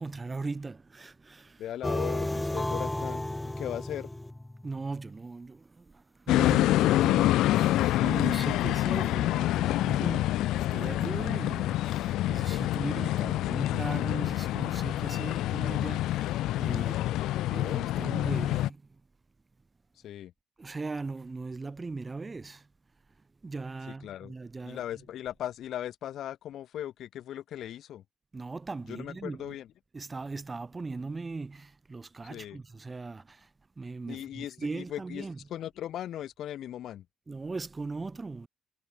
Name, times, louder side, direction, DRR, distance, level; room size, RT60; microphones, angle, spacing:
voice 1, 0.0-1.6 4.6-7.3 7.7-17.0 17.5-18.8 20.6-22.7 23.4-24.8 28.3-29.6 29.9-33.5 33.8-35.4 37.3-38.5, right 3 dB, 25° right, 3.8 m, -39 dB
voice 2, 1.6-3.2 3.6-4.1 12.6-13.8 16.8-18.1 20.0-20.3 23.8-24.3 24.6-28.0 28.8-29.7 32.3-32.6 34.1-37.1, left 11 dB, 75° left, 5.7 m, -39 dB
sound 1, 1.8-5.0, left 1 dB, 10° left, 0.5 m, -33 dB
sound 2, 6.3-18.7, left 15 dB, 90° left, 0.6 m, -27 dB
cardioid pair, 90°, 0 cm